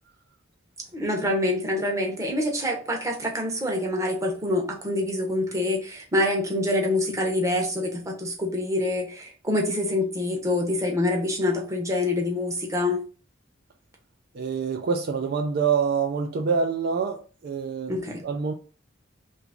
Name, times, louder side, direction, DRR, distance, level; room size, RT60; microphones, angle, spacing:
voice 1, 0.9-13.0 17.9-18.2, left 1 dB, 15° right, 0 dB, 0.7 m, -26 dB
voice 2, 14.3-18.5, right 5 dB, 50° right, 3 dB, 0.3 m, -26 dB
3.0 x 2.5 x 3.4 m, 0.38 s
head